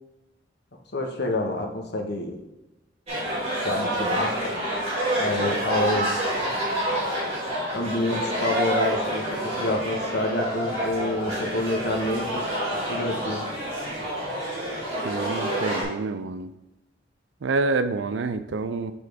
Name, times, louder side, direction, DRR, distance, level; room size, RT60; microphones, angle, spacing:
voice 1, 0.9-2.4 3.6-4.5 5.1-6.2 6.9-7.0 7.7-13.5, left 1 dB, 65° left, 2 dB, 1.0 m, -28 dB
sound 1, 3.1-15.8, right 1 dB, 35° right, 2.4 m, -28 dB
voice 2, 15.0-16.5 17.4-18.9, right 3 dB, 90° right, 11 dB, 0.5 m, -27 dB
7.0 x 3.7 x 4.7 m, 0.97 s
head